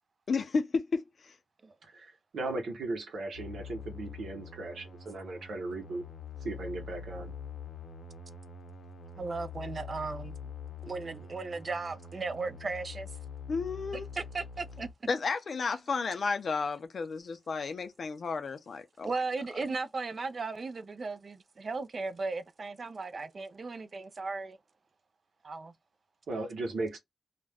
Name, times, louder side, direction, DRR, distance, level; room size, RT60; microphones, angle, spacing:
voice 1, 0.3-1.3 13.5-14.1 15.1-19.1, left 4 dB, 55° left, 0.5 m, -32 dB
voice 2, 1.9-6.0 6.4-7.3 26.3-27.0, right 2 dB, 85° right, 0.9 m, -37 dB
sound 1, 3.3-14.9, left 5 dB, 85° left, 0.8 m, -45 dB
voice 3, 9.2-10.4 10.8-13.1 14.1-14.9 19.0-24.6 25.4-25.7, right 3 dB, 45° right, 0.3 m, -36 dB
2.3 x 2.1 x 3.4 m
wide cardioid pair, 110°, 0 cm